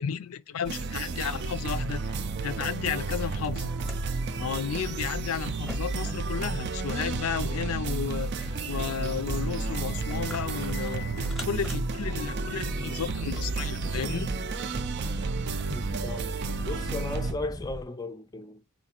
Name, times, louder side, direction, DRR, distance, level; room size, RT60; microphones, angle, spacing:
voice 1, 0.0-2.0 2.4-3.7 4.4-14.3, left 7 dB, 85° left, 0.4 m, -33 dB
sound 1, 0.6-17.3, right 4 dB, 55° right, 0.4 m, -32 dB
sound 2, 0.8-17.8, equal, ahead, 0.8 m, -39 dB
voice 2, 15.7-18.6, left 2 dB, 20° left, 0.4 m, -36 dB
4.1 x 2.7 x 2.8 m
head